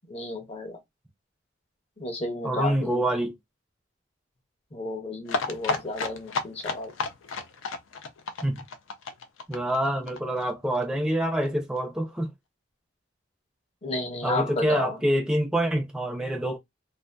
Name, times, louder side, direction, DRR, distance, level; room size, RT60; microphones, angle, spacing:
voice 1, 0.1-0.8 2.0-3.0 4.7-6.9 13.8-15.0, left 2 dB, 30° left, 0.7 m, -32 dB
voice 2, 2.4-3.4 8.4-8.6 9.5-12.3 14.2-16.6, right 1 dB, 5° right, 0.4 m, -26 dB
sound 1, 5.3-10.8 11.1-11.2 11.4-11.5 11.8-11.9, left 4 dB, 80° left, 0.4 m, -32 dB
2.6 x 2.4 x 2.2 m
head